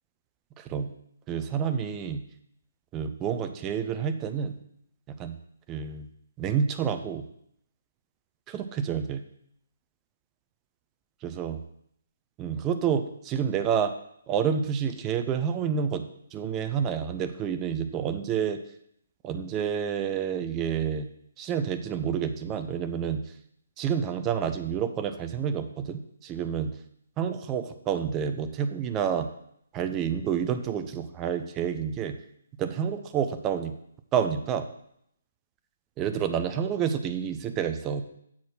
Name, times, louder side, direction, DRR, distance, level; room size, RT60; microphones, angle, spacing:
voice 1, 0.6-0.9 1.3-2.2 2.9-4.5 5.2-5.3 5.7-6.1 6.4-7.2 8.5-9.2 11.2-11.6 12.4-13.9 14.3-16.0 16.3-18.6 19.2-21.1 21.4-23.2 23.8-26.7 27.2-29.3 29.7-32.1 32.6-33.7 34.1-34.7 36.0-38.0, right 7 dB, 20° right, 8 dB, 0.5 m, -29 dB
7.1 x 4.2 x 6.2 m, 0.72 s
figure-of-eight pair, 135°, 0 cm